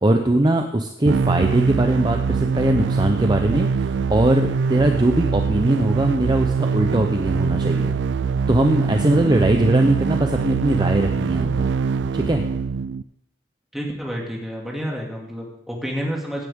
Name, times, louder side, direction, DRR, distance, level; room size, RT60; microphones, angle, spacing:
voice 1, 0.0-7.9 8.5-11.7 12.1-12.4, right 1 dB, 25° right, 4 dB, 0.6 m, -20 dB
sound 1, 1.1-13.0, right 5 dB, 90° right, 0.4 m, -23 dB
voice 2, 13.7-16.5, equal, ahead, -2 dB, 2.4 m, -29 dB
16.5 x 9.7 x 3.7 m, 0.77 s
head